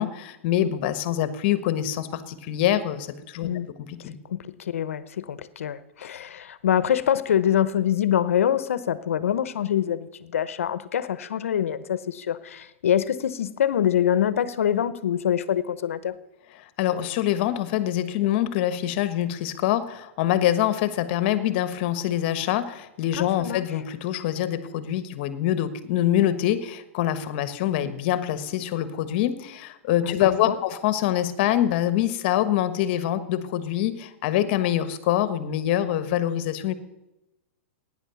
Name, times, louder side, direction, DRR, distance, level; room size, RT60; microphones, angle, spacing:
voice 1, 0.0-3.5 3.9-4.1 16.8-36.7, left 12 dB, 50° left, 13 dB, 1.3 m, -25 dB
voice 2, 4.3-16.2 23.1-23.6 30.0-30.6, left 10 dB, 85° left, 16 dB, 0.9 m, -25 dB
16.0 x 10.0 x 7.0 m, 0.96 s
hypercardioid pair, 140°, 7 cm